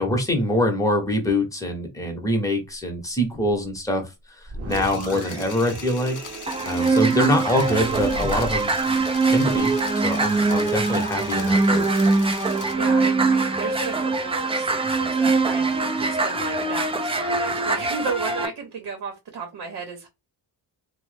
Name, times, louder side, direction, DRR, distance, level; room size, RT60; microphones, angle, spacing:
voice 1, 0.0-6.2 6.6-8.7 9.3-11.9, left 1 dB, 10° left, 0.9 m, -24 dB
sound 1, 4.5-8.6, right 3 dB, 40° right, 0.9 m, -34 dB
sound 2, 4.7-12.7, left 8 dB, 50° left, 0.5 m, -41 dB
sound 3, 6.5-18.4, right 3 dB, 15° right, 0.4 m, -22 dB
voice 2, 12.7-20.1, right 4 dB, 70° right, 0.8 m, -34 dB
3.0 x 2.1 x 3.2 m
wide cardioid pair, 120°, 40 cm